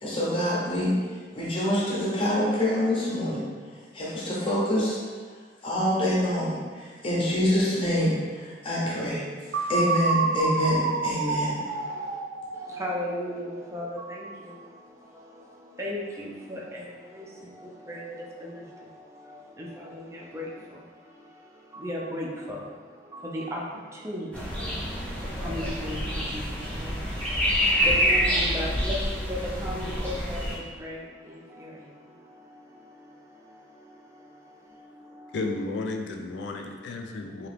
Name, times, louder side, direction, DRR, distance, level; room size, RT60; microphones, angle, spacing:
voice 1, 0.0-5.0 5.6-11.6, left 1 dB, 30° left, -6 dB, 0.7 m, -26 dB
sound 1, 9.5-13.4, right 3 dB, 80° right, 0.3 m, -28 dB
voice 2, 11.7-12.2 12.5-35.4, equal, 15° right, -3 dB, 0.4 m, -38 dB
sound 2, 24.3-30.6, equal, 10° left, 0.9 m, -27 dB
voice 3, 35.3-37.5, left 2 dB, 75° left, 3 dB, 0.4 m, -33 dB
2.8 x 2.4 x 3.3 m, 1.5 s
head